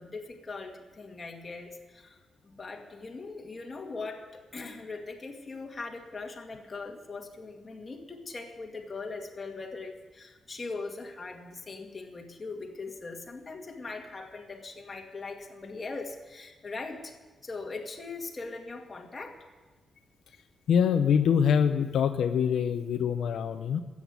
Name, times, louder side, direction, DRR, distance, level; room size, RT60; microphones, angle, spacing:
voice 1, 0.0-2.2 2.4-17.1 17.4-19.4, left 3 dB, 30° left, 1 dB, 2.2 m, -40 dB
voice 2, 20.7-23.8, left 7 dB, 80° left, 7 dB, 0.7 m, -24 dB
13.5 x 8.7 x 9.4 m, 1.2 s
cardioid pair, 125°, 0 cm